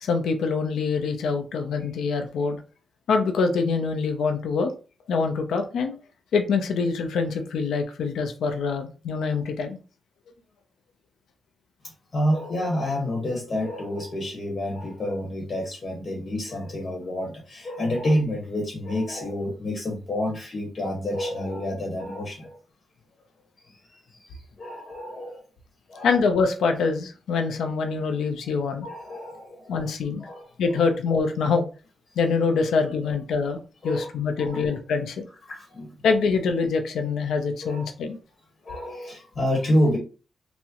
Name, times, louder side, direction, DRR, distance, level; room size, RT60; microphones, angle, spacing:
voice 1, 0.0-2.6 3.1-4.7 5.1-5.9 6.3-9.8 26.0-28.9 29.7-30.3 30.6-31.7 32.2-35.2 36.0-38.2, left 4 dB, 90° left, 5 dB, 0.5 m, -25 dB
voice 2, 12.1-22.6 23.6-25.4 25.9-26.1 28.8-29.9 30.2-30.5 32.8-33.1 33.8-34.1 34.4-34.8 35.5-35.9 37.6-37.9 38.6-40.0, left 1 dB, 40° left, -1 dB, 0.9 m, -28 dB
3.5 x 2.0 x 2.9 m, 0.34 s
cardioid pair, 110°, 0 cm